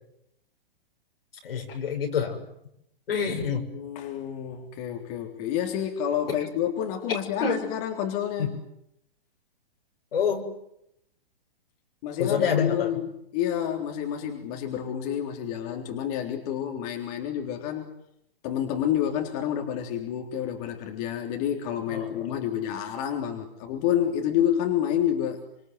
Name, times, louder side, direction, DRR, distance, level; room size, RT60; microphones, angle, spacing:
voice 1, 1.4-2.4 3.1-3.7 6.3-6.5 7.1-7.7 8.4-8.6 10.1-10.5 12.2-13.0 21.9-22.4, left 6 dB, 75° left, 3 dB, 7.0 m, -27 dB
voice 2, 3.7-8.5 12.0-17.9 18.4-25.4, left 10 dB, 40° left, 2 dB, 3.7 m, -29 dB
26.5 x 25.5 x 8.0 m, 0.78 s
hypercardioid pair, 130°, 29 cm